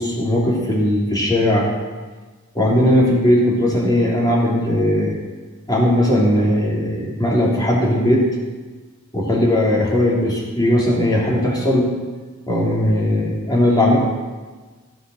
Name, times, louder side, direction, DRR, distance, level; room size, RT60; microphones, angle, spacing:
voice 1, 0.0-1.7 2.5-5.2 5.7-8.2 9.1-11.9 12.5-14.0, left 1 dB, 20° left, -4 dB, 3.4 m, -18 dB
15.5 x 8.1 x 6.6 m, 1.3 s
head